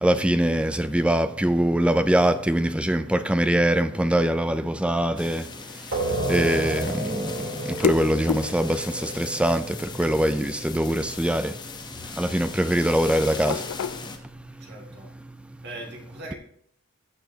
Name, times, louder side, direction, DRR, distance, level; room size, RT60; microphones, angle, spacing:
voice 1, 0.0-5.4 6.3-7.3 7.8-9.6 10.0-11.5 12.2-13.6, right 1 dB, 5° right, 0.4 m, -23 dB
sound 1, 5.0-14.5, left 7 dB, 90° left, 0.4 m, -35 dB
sound 2, 5.2-14.2, left 4 dB, 20° left, 0.9 m, -39 dB
sound 3, 5.9-11.3, right 1 dB, 80° right, 3.3 m, -32 dB
voice 2, 14.6-15.1 15.6-16.3, right 1 dB, 50° right, 2.5 m, -40 dB
15.0 x 7.0 x 2.8 m
head